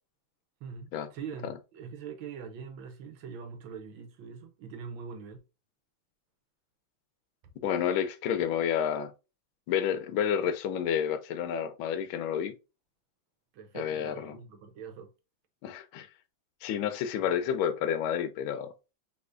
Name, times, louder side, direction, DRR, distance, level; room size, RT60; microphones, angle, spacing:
voice 1, 0.6-5.4 13.5-15.1 17.2-17.3, right 6 dB, 80° right, 1.6 m, -43 dB
voice 2, 7.6-9.1 9.7-12.5 13.7-14.4 15.6-16.1 16.6-18.7, left 9 dB, 85° left, 1.4 m, -30 dB
5.6 x 3.0 x 2.5 m
omnidirectional pair, 2.2 m